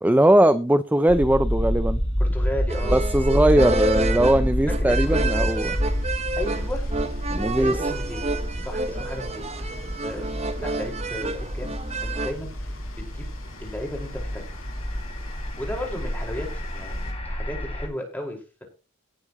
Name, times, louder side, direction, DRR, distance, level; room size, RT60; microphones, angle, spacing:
voice 1, 0.0-2.0 2.9-5.8 7.3-7.8, right 1 dB, 10° right, 0.4 m, -20 dB
sound 1, 1.1-17.9, equal, 30° left, 2.2 m, -28 dB
voice 2, 2.2-3.0 3.5-3.8 4.7-5.5 6.4-6.9 7.6-8.3 8.6-11.7 12.0-13.3 13.6-14.5 15.6-18.6, left 1 dB, 10° left, 5.0 m, -35 dB
sound 2, 2.7-12.3, right 2 dB, 30° right, 1.2 m, -30 dB
sound 3, 4.9-17.1, left 2 dB, 70° left, 4.8 m, -48 dB
18.5 x 8.4 x 3.1 m
head